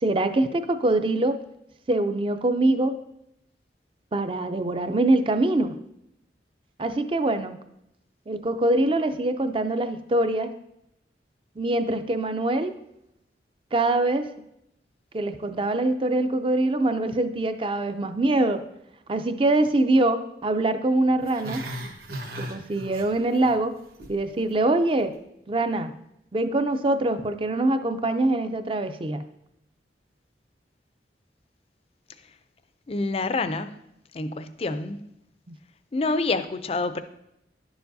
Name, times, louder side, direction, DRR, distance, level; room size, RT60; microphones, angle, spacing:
voice 1, 0.0-1.4 1.9-2.9 4.1-5.8 6.8-7.6 8.3-10.5 11.6-12.7 13.7-14.3 15.1-18.6 19.1-21.6 22.4-23.7 24.1-25.1 25.5-25.9 26.3-29.2 35.5-35.6, right 2 dB, 30° right, 9 dB, 0.4 m, -24 dB
Growling, 21.2-23.5 23.8-24.2 24.5-24.6, right 1 dB, 55° right, 1.3 m, -36 dB
voice 2, 32.9-33.7 34.1-35.1 35.9-37.0, left 3 dB, 35° left, 11 dB, 0.4 m, -27 dB
10.5 x 7.0 x 2.7 m, 0.81 s
head